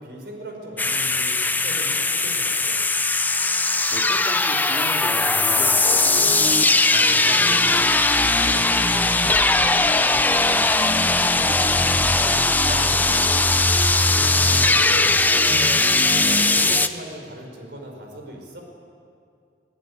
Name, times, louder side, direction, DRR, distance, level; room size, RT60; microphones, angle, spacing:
voice 1, 0.0-2.8 7.0-7.5 14.1-18.6, right 1 dB, 65° right, 2 dB, 5.0 m, -38 dB
sound 1, 0.8-16.9, left 2 dB, 10° left, 0.6 m, -19 dB
voice 2, 3.9-6.5 6.9-10.7 11.0-13.4, right 1 dB, 40° right, 1 dB, 3.0 m, -37 dB
21.0 x 17.5 x 9.6 m, 2.3 s
head